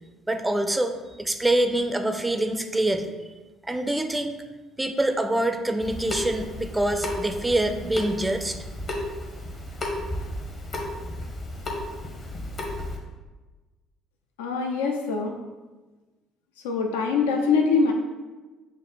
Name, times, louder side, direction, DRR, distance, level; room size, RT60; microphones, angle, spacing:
voice 1, 0.3-3.1 3.7-4.4 4.8-8.6, right 1 dB, 10° right, 7 dB, 0.4 m, -25 dB
Water tap faucet / Sink (filling or washing) / Drip, 5.8-13.0, left 1 dB, 40° left, 0.8 m, -33 dB
voice 2, 14.4-15.3 16.6-17.9, left 4 dB, 75° left, 2 dB, 0.3 m, -23 dB
4.9 x 2.1 x 4.0 m, 1.2 s
figure-of-eight pair, 50°, 0 cm